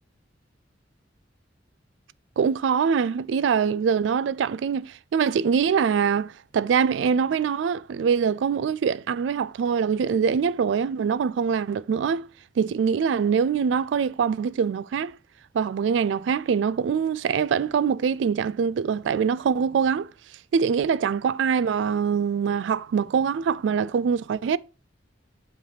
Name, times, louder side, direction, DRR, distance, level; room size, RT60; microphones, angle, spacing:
voice 1, 2.4-12.3 12.6-15.2 15.5-20.1 20.5-24.6, right 6 dB, 70° right, 0.3 m, -24 dB
7.8 x 3.4 x 4.7 m
head